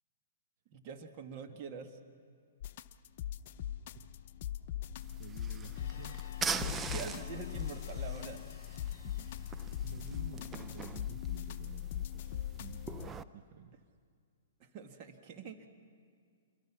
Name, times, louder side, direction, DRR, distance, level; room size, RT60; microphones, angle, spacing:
voice 1, 0.7-1.9 6.6-8.4 8.9-9.3 14.6-15.7, right 6 dB, 40° right, 5 dB, 1.8 m, -45 dB
sound 1, 2.6-13.1, left 11 dB, 50° left, 0.7 m, -40 dB
sound 2, 5.0-13.2, right 5 dB, 15° right, 0.6 m, -43 dB
voice 2, 5.2-6.2 6.7-7.1 9.8-13.1 13.3-13.8, right 8 dB, 55° right, 6 dB, 1.2 m, -51 dB
sound 3, 5.7-10.4, left 7 dB, 75° left, 1.0 m, -56 dB
28.0 x 22.5 x 6.1 m, 2.1 s
hypercardioid pair, 135°, 0 cm